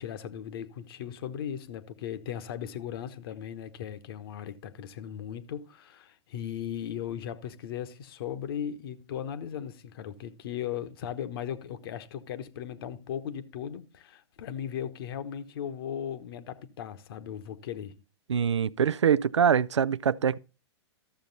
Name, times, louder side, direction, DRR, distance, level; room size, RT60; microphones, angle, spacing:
voice 1, 0.0-17.9, left 9 dB, 55° left, 1.1 m, -37 dB
voice 2, 18.3-20.4, right 7 dB, 85° right, 0.4 m, -24 dB
13.0 x 7.0 x 4.0 m
hypercardioid pair, 110°, 15 cm